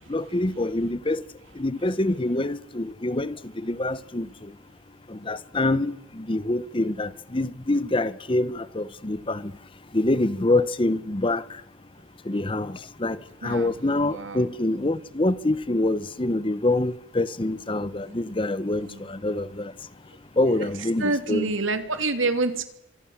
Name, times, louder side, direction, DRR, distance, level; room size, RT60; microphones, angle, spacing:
voice 1, 0.1-1.2 1.6-3.4 3.6-4.3 5.1-9.5 9.9-11.4 12.3-13.2 13.4-19.7 20.4-21.5, left 2 dB, 25° left, 0.8 m, -25 dB
voice 2, 13.4-14.5 18.0-18.4 18.8-19.0 20.1-20.2 21.0-22.6, right 3 dB, 90° right, 2.9 m, -28 dB
26.0 x 23.5 x 7.3 m
head